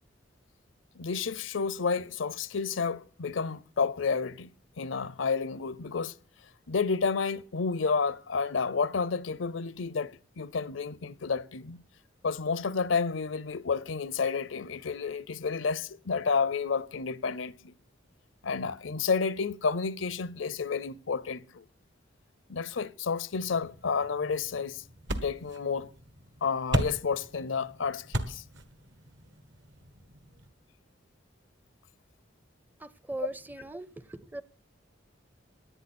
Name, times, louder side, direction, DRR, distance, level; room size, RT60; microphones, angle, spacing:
voice 1, 1.0-4.5 4.8-6.2 6.7-11.8 12.2-17.7 18.4-21.6 22.5-24.8 25.2-25.9 26.4-28.4, left 5 dB, 80° left, 0.6 m, -30 dB
sound 1, 23.4-30.5, right 1 dB, 70° right, 1.5 m, -37 dB
voice 2, 32.8-34.4, right 2 dB, 10° right, 0.5 m, -39 dB
17.0 x 11.0 x 4.3 m
head